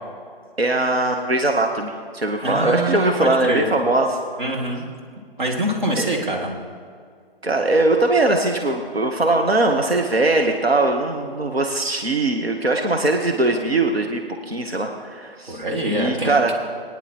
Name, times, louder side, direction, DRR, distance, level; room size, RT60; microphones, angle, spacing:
voice 1, 0.6-4.2 6.0-6.1 7.4-14.2 14.5-16.6, right 2 dB, 90° right, 3 dB, 1.0 m, -21 dB
voice 2, 2.4-3.7 4.4-4.9 5.4-6.5 15.5-16.4, right 1 dB, 55° right, -1 dB, 2.1 m, -24 dB
19.5 x 9.9 x 2.9 m, 2.1 s
figure-of-eight pair, 145°, 30 cm